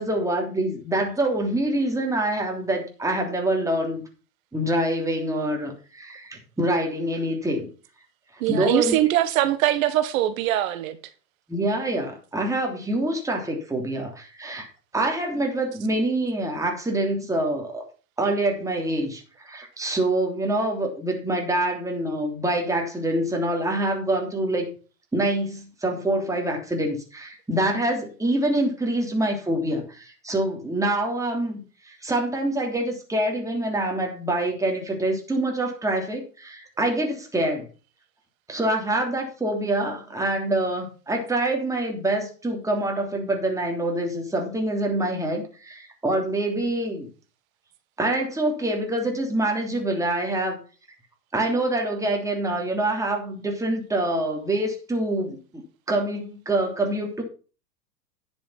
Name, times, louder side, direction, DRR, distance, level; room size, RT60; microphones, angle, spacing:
voice 1, 0.0-4.0 4.5-7.7 8.5-8.9 11.5-14.7 14.9-17.8 18.2-24.7 25.1-31.6 31.9-37.7 38.5-47.1 48.0-50.6 51.3-55.6 55.9-57.2, right 1 dB, 5° right, 3.2 m, -25 dB
voice 2, 8.4-11.0, right 13 dB, 55° right, 1.7 m, -22 dB
10.5 x 7.3 x 5.8 m
hypercardioid pair, 105°, 48 cm